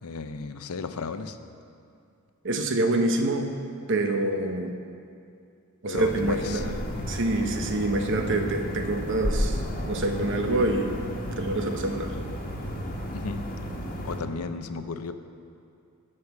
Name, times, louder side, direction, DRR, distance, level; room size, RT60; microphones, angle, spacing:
voice 1, 0.0-1.4 5.9-6.7 13.1-13.4 14.0-15.1, left 4 dB, 75° left, 9 dB, 0.6 m, -34 dB
voice 2, 2.4-3.5 3.9-4.8 5.8-6.7 7.0-9.6 9.8-11.1 11.4-12.1, right 2 dB, 55° right, 5 dB, 0.9 m, -26 dB
sound 1, 6.0-14.2, equal, 40° left, 1.4 m, -32 dB
13.0 x 5.6 x 7.0 m, 2.4 s
head